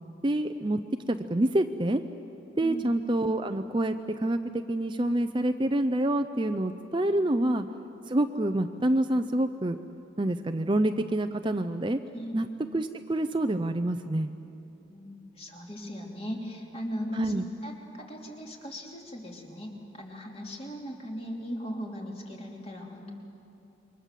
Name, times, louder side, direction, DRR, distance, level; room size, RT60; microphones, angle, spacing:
voice 1, 0.2-0.8 1.1-2.0 2.6-7.7 8.1-9.8 10.2-12.0 12.3-12.5 12.7-14.3 17.1-17.4, right 1 dB, 25° right, 8 dB, 0.6 m, -27 dB
voice 2, 2.6-2.9 12.1-12.3 14.9-23.1, equal, 30° left, 0 dB, 3.1 m, -38 dB
28.0 x 23.5 x 7.5 m, 2.9 s
head